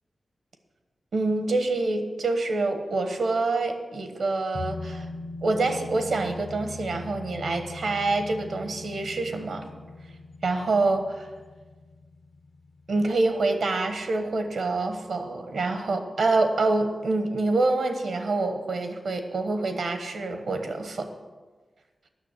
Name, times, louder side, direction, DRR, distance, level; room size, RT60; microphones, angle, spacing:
voice 1, 1.1-5.1 5.4-9.7 10.4-11.0 12.9-21.1, right 3 dB, 80° right, 7 dB, 1.3 m, -26 dB
sound 1, 4.5-13.7 14.0-14.1, left 3 dB, 55° left, 0.6 m, -40 dB
9.6 x 6.4 x 8.3 m, 1.3 s
wide cardioid pair, 80°, 0 cm